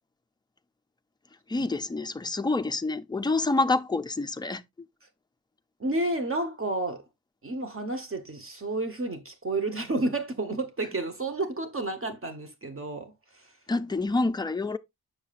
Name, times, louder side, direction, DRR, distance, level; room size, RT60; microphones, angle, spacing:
voice 1, 1.5-4.6 13.7-14.8, left 3 dB, 10° left, 0.3 m, -27 dB
voice 2, 5.8-7.0 7.4-13.5, right 2 dB, 35° right, 1.1 m, -31 dB
7.0 x 6.5 x 2.4 m
wide cardioid pair, 125°, 37 cm